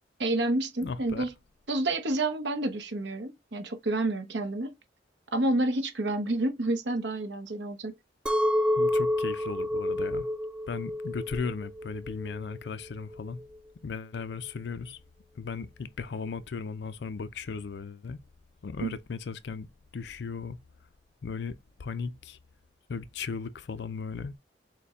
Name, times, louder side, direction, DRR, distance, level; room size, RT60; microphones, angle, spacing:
voice 1, 0.2-1.3 1.7-4.7 5.3-7.9 18.8-19.0, right 2 dB, 75° right, 0.9 m, -29 dB
voice 2, 0.8-1.3 8.8-10.3 10.7-13.4 13.8-15.0 15.4-18.2 18.6-20.6 21.2-22.4 22.9-24.4, left 5 dB, 65° left, 0.4 m, -36 dB
Chink clink, 8.3-13.4, left 1 dB, 5° right, 0.4 m, -29 dB
6.6 x 2.2 x 3.6 m
head